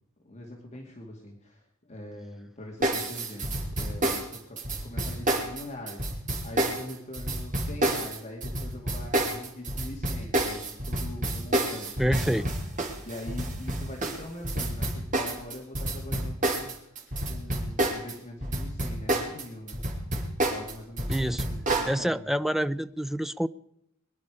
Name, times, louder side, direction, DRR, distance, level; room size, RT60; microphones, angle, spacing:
voice 1, 0.2-12.5 13.0-17.0 17.3-19.8 20.5-22.3, left 1 dB, 30° left, 2.4 m, -43 dB
sound 1, 2.8-18.1 18.4-21.9, right 1 dB, 35° right, 3.1 m, -29 dB
voice 2, 12.0-12.5 21.1-21.4 21.8-23.5, equal, ahead, 0.5 m, -27 dB
23.0 x 11.5 x 5.0 m
head